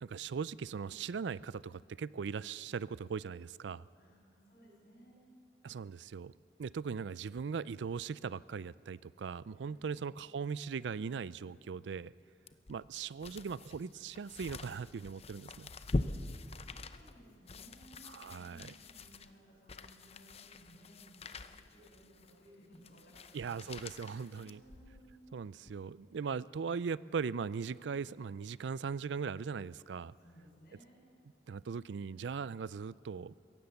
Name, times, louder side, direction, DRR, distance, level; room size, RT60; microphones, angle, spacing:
voice 1, 0.0-3.8 5.6-6.3 6.6-12.1 12.7-15.7 18.0-18.7 23.3-24.6 25.3-30.1 31.5-33.3, right 6 dB, 75° right, 20 dB, 0.4 m, -39 dB
voice 2, 4.0-5.2 9.6-10.0 16.6-21.1 21.7-25.2 30.2-31.0, equal, 55° left, -2 dB, 7.2 m, -60 dB
sound 1, 12.5-25.1 25.6-25.7, left 2 dB, 35° left, 0.7 m, -43 dB
23.0 x 17.0 x 7.1 m, 2.4 s
head